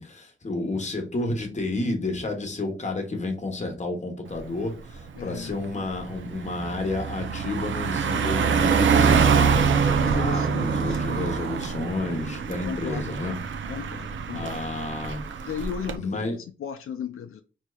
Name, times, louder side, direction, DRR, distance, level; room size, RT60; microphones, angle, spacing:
voice 1, 0.0-13.3 14.3-15.2 15.9-16.3, left 2 dB, 35° left, 1.0 m, -31 dB
Car passing by, 4.4-4.6 5.0-16.0, right 6 dB, 65° right, 0.5 m, -25 dB
voice 2, 5.1-5.6 10.0-11.6 12.6-13.2 13.7-14.6 15.5-17.4, left 8 dB, 85° left, 0.4 m, -36 dB
4.4 x 2.8 x 2.3 m
wide cardioid pair, 150°, 21 cm